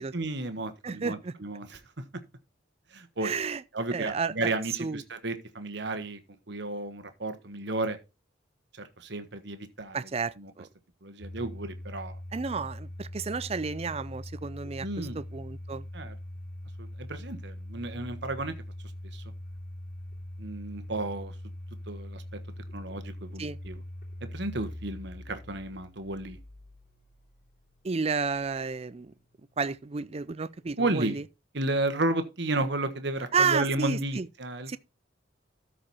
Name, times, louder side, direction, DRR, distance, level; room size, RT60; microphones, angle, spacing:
voice 1, 0.0-2.0 2.9-3.3 3.7-8.0 8.7-10.0 10.4-10.5 11.0-12.1 14.8-15.2 15.9-16.1 16.8-18.5 19.1-19.2 20.4-21.3 21.9-22.2 22.7-23.8 24.2-26.4 30.8-31.2 31.5-34.8, right 2 dB, 60° right, 1.3 m, -33 dB
voice 2, 0.8-1.4 3.2-3.6 3.9-4.5 4.8-5.0 9.9-10.7 12.3-15.9 23.4-23.6 27.8-29.1 29.6-31.2 33.3-34.3 34.7-34.8, right 5 dB, 30° right, 0.5 m, -31 dB
Domestic sounds home sounds, 11.2-28.1, left 1 dB, 50° left, 3.4 m, -42 dB
13.0 x 5.0 x 4.1 m
head